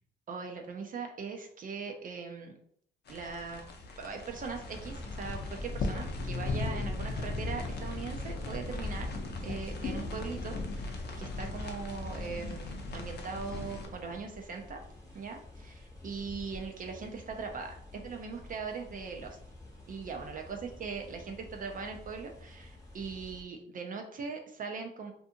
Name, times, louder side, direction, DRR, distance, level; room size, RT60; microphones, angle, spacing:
voice 1, 0.3-2.5 3.1-3.6 4.0-9.1 9.4-14.8 15.1-19.4 19.9-25.1, right 5 dB, 45° right, 3 dB, 0.4 m, -40 dB
sound 1, 3.1-13.9, left 3 dB, 55° left, 0.6 m, -38 dB
sound 2, 4.1-23.4, left 2 dB, 15° left, 1.0 m, -45 dB
2.6 x 2.5 x 2.6 m, 0.67 s
cardioid pair, 90°, 20 cm